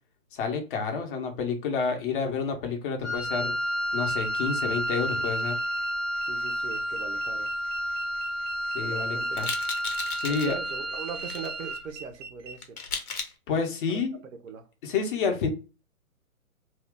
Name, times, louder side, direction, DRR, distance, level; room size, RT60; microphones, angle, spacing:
voice 1, 0.3-3.6 3.9-5.6 8.7-9.5 10.1-10.6 13.5-14.2 14.8-15.5, left 5 dB, 35° left, 0.9 m, -29 dB
Wind instrument woodwind instrument, 3.0-11.9, equal, 5° left, 0.3 m, -31 dB
sound 1, 4.0-12.5, right 5 dB, 25° right, 0.6 m, -43 dB
voice 2, 6.2-7.5 8.8-9.4 10.3-12.8 14.4-14.6, right 6 dB, 65° right, 0.8 m, -40 dB
sound 2, 9.4-10.5 11.1-11.5 12.6-13.3, left 5 dB, 85° left, 1.0 m, -35 dB
2.8 x 2.4 x 3.4 m
hypercardioid pair, 140°, 44 cm